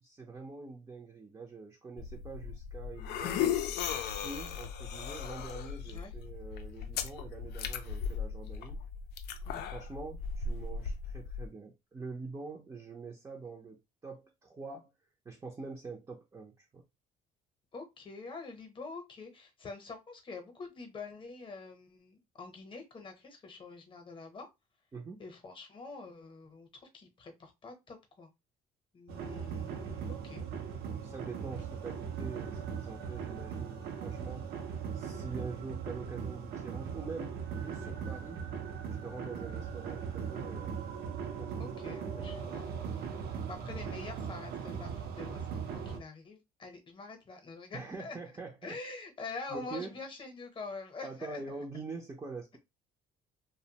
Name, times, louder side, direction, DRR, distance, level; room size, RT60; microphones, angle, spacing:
voice 1, 0.0-3.6 4.2-8.8 9.5-14.9 15.2-16.8 24.9-25.2 31.0-34.5 34.9-38.4 39.0-40.9 41.4-42.4 47.7-48.9 49.5-50.0 51.0-52.6, right 4 dB, 20° right, 0.5 m, -45 dB
sound 1, 2.0-11.5, left 7 dB, 80° left, 0.4 m, -37 dB
voice 2, 5.8-6.1 9.4-9.7 17.7-24.5 25.2-28.3 28.9-30.4 41.6-43.1 43.5-48.2 48.6-51.6, left 3 dB, 30° left, 0.8 m, -46 dB
sound 2, 29.1-46.0, right 7 dB, 65° right, 0.6 m, -39 dB
2.4 x 2.1 x 2.8 m
cardioid pair, 110°, 17 cm